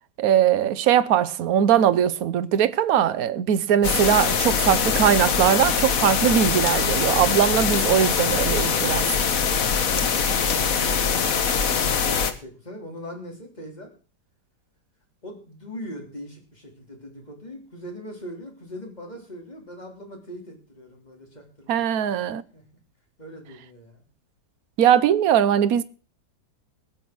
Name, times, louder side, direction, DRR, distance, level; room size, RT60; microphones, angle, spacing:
voice 1, 0.2-9.1 21.7-22.4 24.8-25.8, right 9 dB, 60° right, 1.2 m, -20 dB
sound 1, 3.8-12.3, left 6 dB, 55° left, 1.5 m, -23 dB
voice 2, 9.7-13.9 15.2-22.7 23.2-24.0, equal, 25° left, 3.9 m, -41 dB
20.5 x 7.0 x 6.1 m
omnidirectional pair, 1.9 m